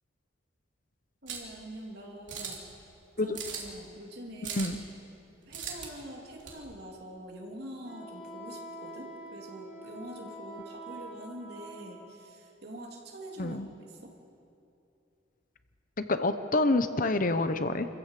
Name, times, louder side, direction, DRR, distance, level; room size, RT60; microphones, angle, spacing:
voice 1, 1.2-2.9 3.2-4.8 5.5-14.1, right 1 dB, 55° right, 0 dB, 3.1 m, -45 dB
sound 1, 1.3-1.5 2.3-2.7 3.3-3.8 4.4-4.8 5.5-5.9 6.4-6.6, right 7 dB, 75° right, 3.1 m, -38 dB
Wind instrument woodwind instrument, 7.8-12.0, right 1 dB, 10° right, 6.2 m, -45 dB
voice 2, 16.0-17.9, left 2 dB, 45° left, 10 dB, 0.8 m, -27 dB
25.5 x 15.0 x 7.5 m, 2.7 s
head